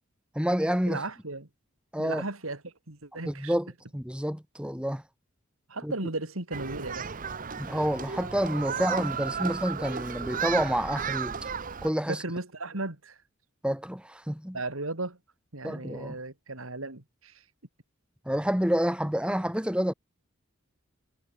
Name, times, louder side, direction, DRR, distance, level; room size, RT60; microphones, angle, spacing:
voice 1, 0.3-1.0 1.9-2.2 3.2-5.0 5.8-5.9 7.6-11.4 11.8-12.2 13.6-14.6 15.6-16.2 18.3-19.9, equal, 5° right, 2.4 m, -28 dB
voice 2, 0.9-1.5 2.0-3.5 5.7-7.1 9.4-9.5 12.1-13.2 14.5-15.2 15.5-17.4, right 2 dB, 80° right, 3.4 m, -36 dB
Human group actions, 6.5-11.9, right 6 dB, 40° right, 0.9 m, -34 dB
head